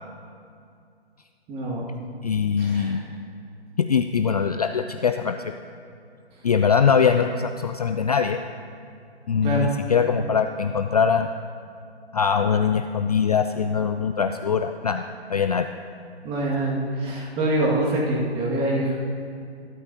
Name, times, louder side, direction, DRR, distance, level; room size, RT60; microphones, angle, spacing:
voice 1, 1.5-2.0 2.6-3.1 9.4-9.7 16.2-19.0, right 1 dB, 15° right, -3 dB, 1.9 m, -25 dB
voice 2, 2.2-3.0 3.8-5.4 6.4-8.4 9.3-11.3 12.1-15.0 15.3-15.7, left 6 dB, 40° left, 7 dB, 0.4 m, -22 dB
22.5 x 12.5 x 2.8 m, 2.4 s
figure-of-eight pair, 140°, 33 cm